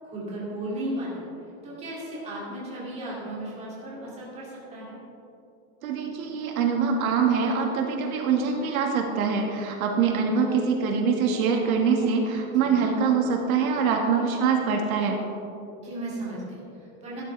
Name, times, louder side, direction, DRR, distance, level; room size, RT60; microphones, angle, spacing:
voice 1, 0.0-1.2 1.6-5.0 12.5-12.9 15.8-17.2, right 1 dB, 15° right, -6 dB, 2.6 m, -35 dB
voice 2, 5.8-15.2, right 5 dB, 90° right, 2 dB, 1.8 m, -24 dB
12.5 x 12.5 x 3.4 m, 2.8 s
supercardioid pair, 180°, 41 cm